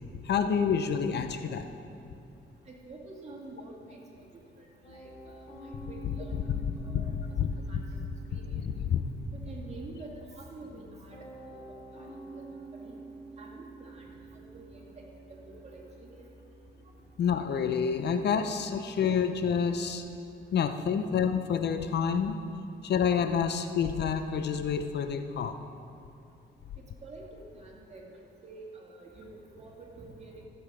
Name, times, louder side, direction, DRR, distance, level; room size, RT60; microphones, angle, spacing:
voice 1, 0.2-1.7 6.9-7.6 8.5-9.0 17.2-20.0 20.5-22.4 22.8-25.6, left 7 dB, 60° left, 8 dB, 0.6 m, -28 dB
voice 2, 2.7-4.3 4.6-5.4 5.9-6.4 6.8-7.1 7.7-7.8 8.3-8.4 9.3-11.6 11.9-12.4 12.7-13.0 13.4-14.9 15.3-16.5 27.0-28.0 28.4-30.4, right 2 dB, 35° right, -2 dB, 2.5 m, -48 dB
Piano, 4.8-22.0, right 2 dB, 35° left, 3.2 m, -50 dB
15.0 x 7.1 x 4.9 m, 2.6 s
cardioid pair, 90°, 20 cm